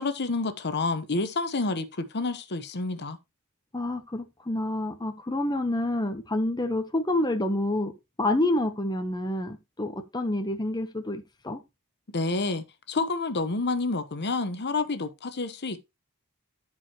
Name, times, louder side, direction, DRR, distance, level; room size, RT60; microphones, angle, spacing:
voice 1, 0.0-3.2 12.1-15.9, left 3 dB, 50° left, 1.0 m, -29 dB
voice 2, 3.7-7.9 8.2-11.6, left 1 dB, 20° left, 0.9 m, -28 dB
14.5 x 4.9 x 3.0 m
head